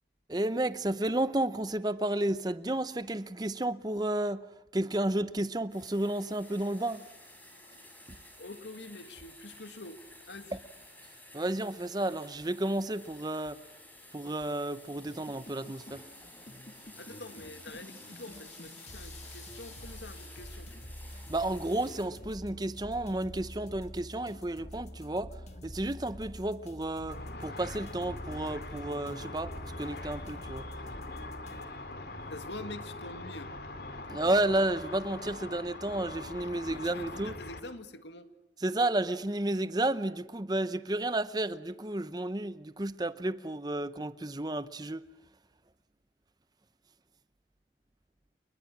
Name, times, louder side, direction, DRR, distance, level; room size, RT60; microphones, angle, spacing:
voice 1, 0.3-7.1 8.1-8.2 10.5-10.6 11.3-13.6 14.1-16.0 21.1-25.4 25.6-30.7 34.1-37.3 38.6-45.0, right 1 dB, 20° right, 0.8 m, -32 dB
sound 1, 5.7-22.1, left 1 dB, 10° left, 6.5 m, -52 dB
voice 2, 8.4-10.0 10.3-10.6 17.0-20.8 32.3-33.5 36.7-38.3, left 2 dB, 85° left, 2.1 m, -46 dB
sound 2, 15.1-31.7, equal, 40° left, 2.3 m, -47 dB
Car / Traffic noise roadway noise / Engine, 27.1-37.6, left 2 dB, 60° left, 2.5 m, -42 dB
29.5 x 21.5 x 6.1 m
head